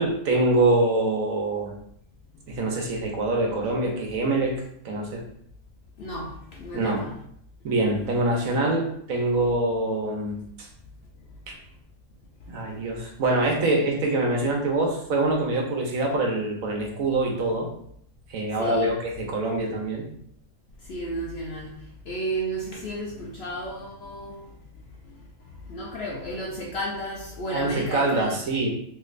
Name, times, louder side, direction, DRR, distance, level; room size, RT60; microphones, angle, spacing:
voice 1, 0.0-1.7 2.5-4.5 4.8-5.2 6.7-7.0 7.6-10.7 11.5-11.6 12.5-17.7 18.3-20.1 27.5-28.7, right 2 dB, 75° right, 0 dB, 1.2 m, -24 dB
voice 2, 6.0-7.1 12.8-12.9 18.6-18.9 20.8-21.7 22.1-24.6 25.0-28.4, right 1 dB, 65° left, -2 dB, 0.7 m, -33 dB
3.2 x 3.1 x 2.4 m, 0.68 s
omnidirectional pair, 1.4 m